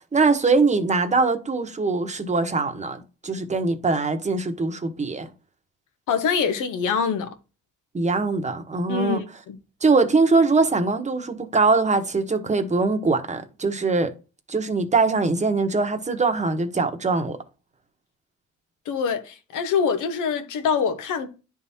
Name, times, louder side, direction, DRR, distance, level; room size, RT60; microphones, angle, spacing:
voice 1, 0.1-5.3 7.9-9.2 9.8-14.1 14.5-17.4, right 3 dB, 25° right, 1.0 m, -22 dB
voice 2, 6.1-7.3 8.9-9.6 18.9-21.3, left 6 dB, 85° left, 1.1 m, -24 dB
10.5 x 3.6 x 2.7 m
cardioid pair, 90°, 30 cm